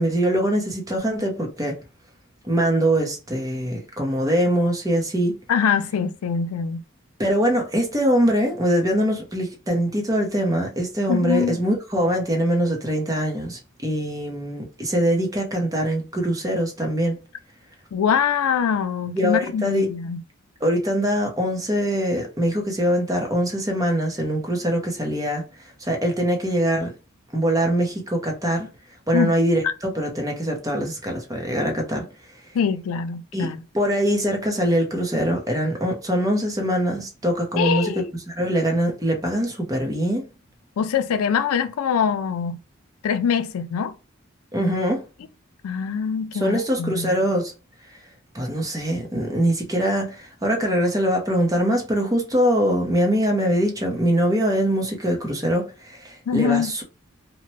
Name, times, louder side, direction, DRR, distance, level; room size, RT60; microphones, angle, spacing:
voice 1, 0.0-1.8 2.4-5.3 7.2-17.1 19.1-19.9 20.6-25.4 25.8-26.9 27.3-28.7 29.1-32.1 33.3-37.9 38.3-40.2 44.5-45.0 46.3-47.5 48.3-56.8, equal, 15° right, 0.6 m, -23 dB
voice 2, 5.5-6.8 11.1-11.6 17.9-20.2 29.1-29.3 32.5-33.6 37.6-38.1 40.8-42.6 43.0-43.9 45.6-47.1 56.3-56.7, left 7 dB, 85° left, 0.4 m, -23 dB
2.8 x 2.1 x 3.0 m
head